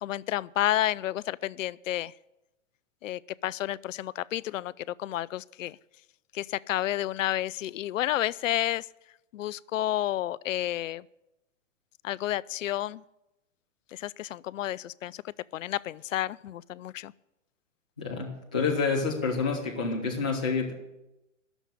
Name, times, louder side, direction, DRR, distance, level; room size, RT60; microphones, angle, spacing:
voice 1, 0.0-2.1 3.0-5.8 6.3-8.9 9.3-11.0 12.0-13.0 13.9-15.2 15.5-17.1, left 13 dB, 80° left, 19 dB, 0.5 m, -31 dB
voice 2, 18.0-20.7, left 4 dB, 5° left, -7 dB, 0.3 m, -28 dB
11.0 x 7.1 x 8.8 m, 0.94 s
hypercardioid pair, 165°, 38 cm